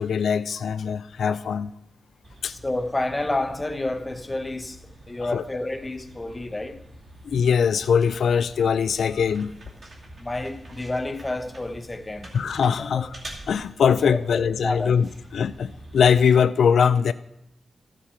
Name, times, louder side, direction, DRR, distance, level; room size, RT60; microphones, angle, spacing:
voice 1, 0.0-1.7 2.4-2.6 5.2-5.4 7.2-9.5 12.3-13.2 13.5-17.1, left 7 dB, 90° left, 0.3 m, -22 dB
sound 1, 2.2-16.2, right 1 dB, 45° right, 2.6 m, -46 dB
voice 2, 2.5-4.8 5.1-6.8 10.2-12.3 12.8-13.1 14.1-15.0, left 2 dB, 15° left, 0.8 m, -29 dB
13.5 x 7.5 x 4.3 m
wide cardioid pair, 150°, 0 cm